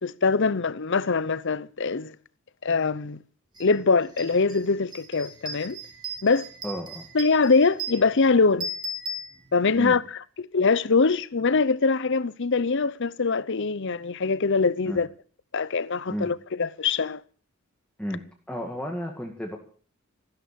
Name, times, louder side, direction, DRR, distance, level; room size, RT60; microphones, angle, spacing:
voice 1, 0.0-2.2 2.6-3.2 3.6-5.8 6.2-6.5 7.1-8.7 9.5-15.1 15.5-17.2, left 4 dB, 60° left, 0.8 m, -23 dB
sound 1, 3.6-3.7 4.0-9.9, right 1 dB, 20° right, 3.1 m, -37 dB
voice 2, 6.6-7.1 9.8-10.0 14.9-15.0 16.1-16.3 18.0-18.2 18.5-19.6, equal, 5° left, 2.2 m, -32 dB
15.0 x 12.5 x 7.0 m
head